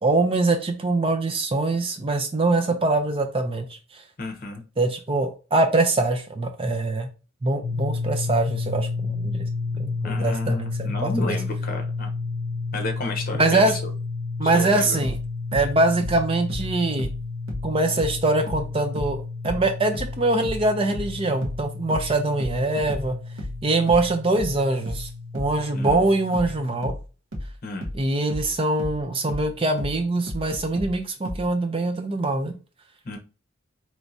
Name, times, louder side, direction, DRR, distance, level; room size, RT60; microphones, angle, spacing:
voice 1, 0.0-4.0 4.8-7.1 7.4-9.5 9.8-11.4 13.4-13.7 14.4-15.2 15.5-17.1 17.6-19.2 19.4-23.2 23.6-27.0 27.9-32.6, right 2 dB, 25° right, 6 dB, 0.4 m, -23 dB
voice 2, 4.2-4.6 10.0-12.1 12.7-13.9 14.4-15.0 25.7-26.0 27.6-27.9 33.0-33.2, left 2 dB, 45° left, 4 dB, 0.9 m, -32 dB
sound 1, 7.6-26.9, left 3 dB, 85° left, 0.6 m, -32 dB
sound 2, 15.0-18.2 18.5-31.5, equal, 70° right, 1.1 m, -34 dB
4.6 x 3.1 x 2.6 m, 0.33 s
head